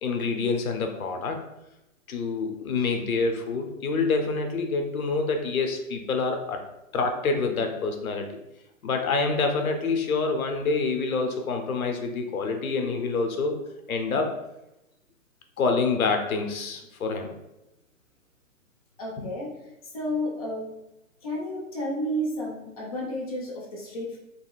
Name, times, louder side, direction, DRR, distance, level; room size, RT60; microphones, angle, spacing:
voice 1, 0.0-1.4 2.1-6.6 6.9-8.3 8.8-13.6 13.9-14.3 15.6-17.3 19.2-19.3, left 4 dB, 80° left, 5 dB, 0.7 m, -27 dB
voice 2, 19.0-19.5 19.9-20.7 21.2-24.2, equal, 25° left, -3 dB, 0.5 m, -31 dB
2.9 x 2.8 x 2.3 m, 0.91 s
hypercardioid pair, 160°, 42 cm